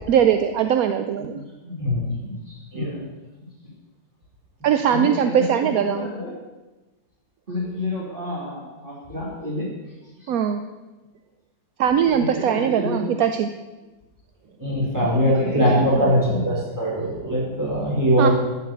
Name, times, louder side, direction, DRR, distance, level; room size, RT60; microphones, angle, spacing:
voice 1, 0.1-1.4 4.6-6.1 10.3-10.6 11.8-13.5 18.2-18.3, right 8 dB, 65° right, 8 dB, 0.9 m, -20 dB
voice 2, 1.2-1.8 2.2-3.1 3.6-3.8 4.9-6.4 7.5-10.3 12.1-13.1 14.9-16.5, left 1 dB, 25° right, -6 dB, 2.6 m, -31 dB
voice 3, 14.6-18.3, equal, 10° right, -7 dB, 4.9 m, -21 dB
12.0 x 7.3 x 8.0 m, 1.1 s
omnidirectional pair, 2.0 m